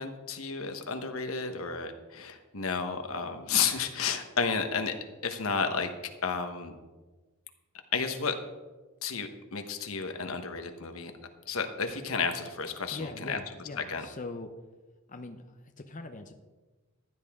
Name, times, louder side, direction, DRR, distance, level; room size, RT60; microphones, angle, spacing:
voice 1, 0.0-4.9 5.2-5.9 6.2-6.7 7.9-8.4 9.0-11.1 11.5-13.4 13.9-14.0, left 5 dB, 80° left, 6 dB, 1.2 m, -32 dB
voice 2, 12.9-14.5 15.1-16.3, left 2 dB, 40° left, 5 dB, 0.7 m, -41 dB
15.0 x 10.5 x 3.7 m, 1.2 s
head